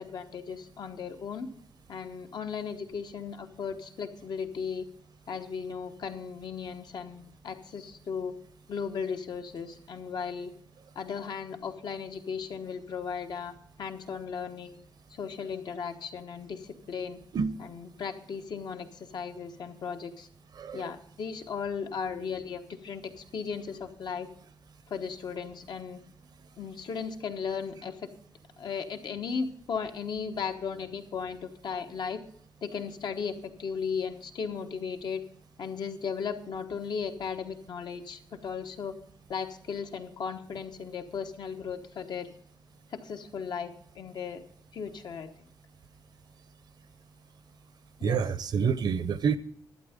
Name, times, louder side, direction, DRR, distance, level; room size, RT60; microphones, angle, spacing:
voice 1, 0.0-1.5 1.9-4.9 5.3-8.4 8.7-10.5 10.9-14.8 15.1-17.2 17.6-20.3 20.7-24.3 24.9-26.0 26.6-28.1 28.6-32.2 32.6-35.2 35.6-39.0 39.3-42.3 42.9-44.4 44.7-45.3 48.0-48.2, left 6 dB, 65° left, 6 dB, 1.2 m, -36 dB
voice 2, 20.5-21.0 48.0-49.4, right 6 dB, 60° right, 16 dB, 0.7 m, -28 dB
12.0 x 8.7 x 5.1 m, 0.65 s
wide cardioid pair, 150°, 8 cm